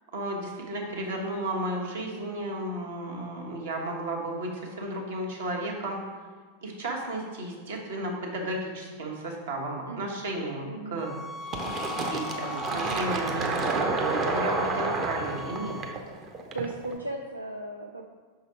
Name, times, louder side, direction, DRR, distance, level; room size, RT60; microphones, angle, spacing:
voice 1, 0.1-6.0 6.6-11.1 12.0-15.8, right 1 dB, 60° right, -1 dB, 1.1 m, -33 dB
voice 2, 9.9-10.2 10.7-11.0 12.7-13.0 16.5-18.0, right 2 dB, 85° right, 1 dB, 0.3 m, -37 dB
sound 1, 11.0-16.0, left 2 dB, 20° left, 0.4 m, -39 dB
Fill (with liquid), 11.5-16.9, right 3 dB, 30° right, 0.7 m, -30 dB
5.8 x 3.9 x 4.7 m, 1.5 s
figure-of-eight pair, 90°, 0 cm